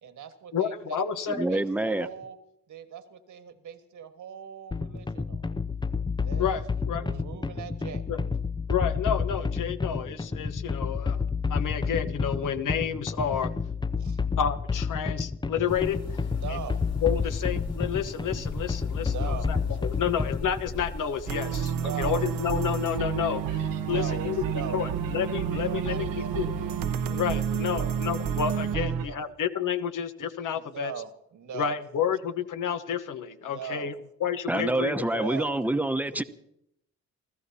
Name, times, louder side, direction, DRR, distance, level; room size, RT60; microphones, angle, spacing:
voice 1, 0.0-1.0 1.2-2.4 2.7-5.5 6.2-6.4 6.8-8.1 14.0-14.2 16.3-16.8 18.9-19.8 21.7-22.2 23.7-24.8 25.6-26.8 27.3-27.9 28.7-29.3 30.5-31.7 33.4-33.9 35.1-35.6, right 7 dB, 65° right, 1.6 m, -40 dB
voice 2, 0.5-1.5 6.4-7.1 8.1-8.2 8.7-11.2 11.5-13.5 14.4-16.2 16.5-16.6 17.0-24.4 24.7-26.5 27.1-30.9 31.5-33.9 34.2-35.3, left 8 dB, 65° left, 1.1 m, -30 dB
voice 3, 1.3-2.1 34.5-36.2, right 1 dB, 5° right, 1.0 m, -26 dB
sound 1, 4.7-20.6, left 5 dB, 15° left, 0.5 m, -30 dB
sound 2, 15.7-29.0, left 2 dB, 50° left, 2.6 m, -43 dB
sound 3, 21.3-29.1, right 8 dB, 80° right, 1.0 m, -29 dB
29.0 x 14.0 x 2.8 m
supercardioid pair, 60°, 33 cm